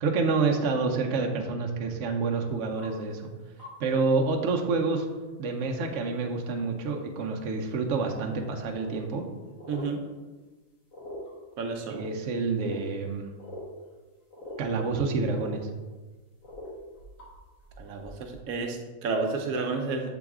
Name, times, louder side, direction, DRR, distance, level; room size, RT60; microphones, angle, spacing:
voice 1, 0.0-3.3 3.8-5.1 5.4-9.2 11.9-13.3 14.6-15.6, right 4 dB, 65° right, 1 dB, 0.9 m, -28 dB
sound 1, 2.8-2.9 3.6-3.8 4.1-4.2 4.5-4.6 6.7-6.8 7.9-8.0 8.4-8.5 8.7-9.2 9.6-9.9 10.9-11.3 11.9-12.1 12.6-13.6 13.9-14.0 14.3-14.6 14.9-15.0 15.2-15.6 16.4-18.4, left 1 dB, 70° left, 2.0 m, -43 dB
voice 2, 9.7-10.0 11.6-12.1 17.8-20.2, right 4 dB, 85° right, 3 dB, 1.1 m, -31 dB
6.9 x 3.9 x 3.6 m, 1.3 s
omnidirectional pair, 1.4 m